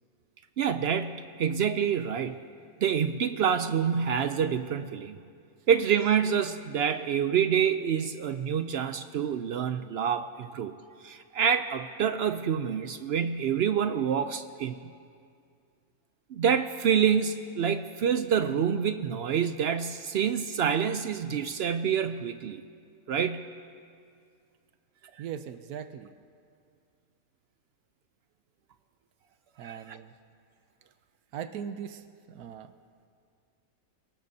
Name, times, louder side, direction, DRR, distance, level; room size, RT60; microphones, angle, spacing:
voice 1, 0.6-2.4 2.8-5.2 5.7-10.8 11.0-14.9 16.3-22.6 23.1-23.5 29.6-30.0, right 7 dB, 70° right, 10 dB, 0.6 m, -27 dB
voice 2, 25.2-26.1 29.6-30.1 31.3-32.7, right 8 dB, 85° right, 9 dB, 1.1 m, -39 dB
28.5 x 18.0 x 2.7 m, 2.3 s
omnidirectional pair, 1.5 m